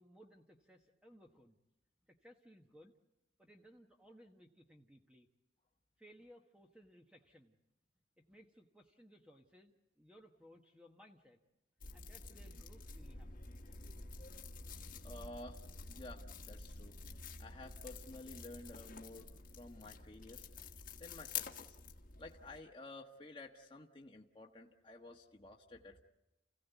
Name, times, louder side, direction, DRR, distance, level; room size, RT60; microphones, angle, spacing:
voice 1, 0.0-1.6 2.1-2.9 3.4-5.3 6.0-7.6 8.3-11.4 11.9-14.1, equal, 5° right, 2 dB, 1.1 m, -62 dB
sound 1, 11.8-22.6, left 5 dB, 40° left, 1.4 m, -49 dB
voice 2, 15.0-15.6 15.9-16.9 17.4-20.5 21.0-21.8 22.2-26.0, left 2 dB, 25° left, 0 dB, 1.3 m, -52 dB
29.0 x 16.5 x 8.1 m, 1.0 s
head